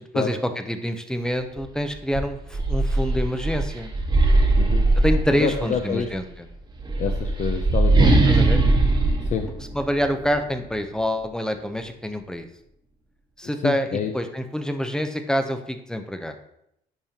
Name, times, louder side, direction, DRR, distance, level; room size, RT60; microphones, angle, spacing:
voice 1, 0.1-3.9 5.0-6.2 8.3-8.6 9.7-12.5 13.4-16.3, equal, 5° left, 6 dB, 0.6 m, -26 dB
sound 1, 1.6-1.7 2.1-5.8 6.7-10.3, right 2 dB, 25° right, 1.1 m, -20 dB
voice 2, 4.6-4.9 5.3-6.1 7.0-8.2 9.3-9.5 13.6-14.1, left 7 dB, 45° left, 4 dB, 0.6 m, -27 dB
10.5 x 3.6 x 2.8 m, 0.77 s
cardioid pair, 110°, 17 cm